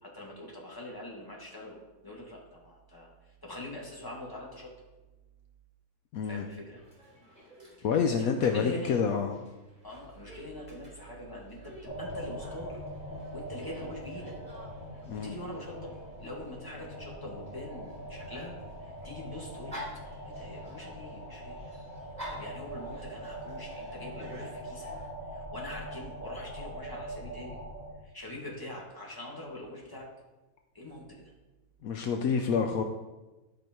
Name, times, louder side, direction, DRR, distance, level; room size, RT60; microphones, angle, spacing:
voice 1, 0.0-4.7 6.2-6.8 7.8-7.9 8.2-9.0 9.8-12.8 13.3-14.4 14.9-18.6 18.8-19.8 20.3-21.8 22.3-24.9 25.3-27.6 28.0-30.1 30.7-31.3, left 1 dB, 15° left, -3 dB, 2.0 m, -43 dB
voice 2, 6.1-6.4 7.8-9.4 15.1-15.3 31.8-32.8, left 6 dB, 70° left, 5 dB, 1.0 m, -28 dB
Dog, 6.7-25.1, equal, 25° right, 3.4 m, -51 dB
sound 1, 11.8-27.9, equal, 10° right, 2.7 m, -42 dB
13.0 x 5.1 x 4.5 m, 1.1 s
omnidirectional pair, 1.6 m